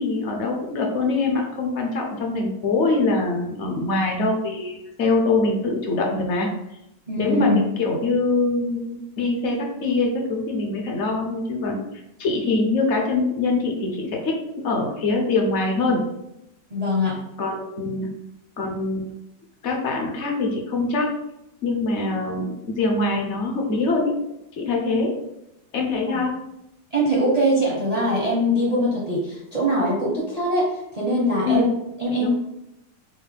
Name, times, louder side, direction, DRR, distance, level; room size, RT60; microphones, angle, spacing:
voice 1, 0.0-6.5 7.2-11.8 12.2-14.4 14.6-16.0 17.4-18.1 18.6-19.0 19.6-21.1 21.6-24.1 24.6-25.1 25.7-26.4 31.4-31.6 32.2-32.3, left 3 dB, 55° left, 1 dB, 0.8 m, -23 dB
voice 2, 7.1-7.6 16.7-17.2 26.1-26.2 26.9-31.7 32.0-32.3, equal, 45° right, -4 dB, 0.5 m, -22 dB
5.4 x 2.2 x 3.3 m, 0.83 s
omnidirectional pair, 1.9 m